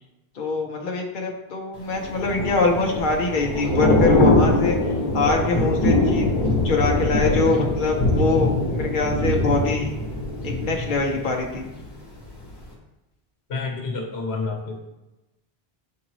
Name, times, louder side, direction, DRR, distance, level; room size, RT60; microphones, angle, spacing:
voice 1, 0.4-4.8 5.1-6.3 6.6-9.9 10.4-11.6, left 3 dB, 55° left, 1 dB, 0.8 m, -24 dB
Thunder / Rain, 1.9-11.9 12.2-12.5, left 1 dB, 25° left, 1.3 m, -22 dB
voice 2, 13.5-14.8, left 4 dB, 85° left, 1 dB, 1.3 m, -29 dB
8.3 x 3.8 x 3.1 m, 1.0 s
omnidirectional pair, 1.1 m